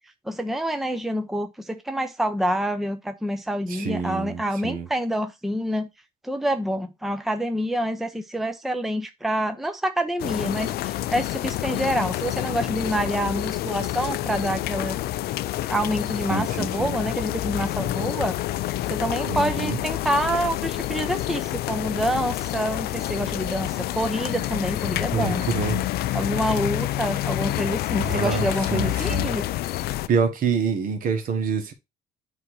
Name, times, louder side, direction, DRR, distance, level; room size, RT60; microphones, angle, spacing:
voice 1, 0.3-5.9 6.2-15.0 15.7-18.4 18.9-25.4 26.1-29.4, equal, ahead, 0.7 m, -27 dB
voice 2, 3.7-4.9 16.3-17.0 19.2-19.8 25.1-25.8 28.0-28.4 28.7-29.3 30.1-31.7, right 5 dB, 55° right, 1.4 m, -26 dB
sound 1, 10.2-30.1, left 15 dB, 70° left, 0.4 m, -28 dB
8.3 x 2.8 x 4.8 m
cardioid pair, 110°, 17 cm